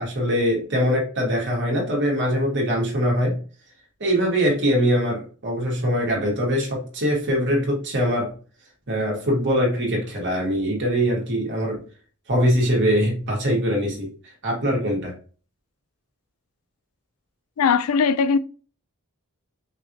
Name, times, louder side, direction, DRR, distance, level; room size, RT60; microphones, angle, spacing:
voice 1, 0.0-3.4 4.0-8.3 8.9-11.8 12.3-15.1, equal, 55° right, 2.2 m, -22 dB
voice 2, 17.6-18.4, left 6 dB, 80° left, 0.4 m, -19 dB
5.9 x 3.2 x 2.8 m
head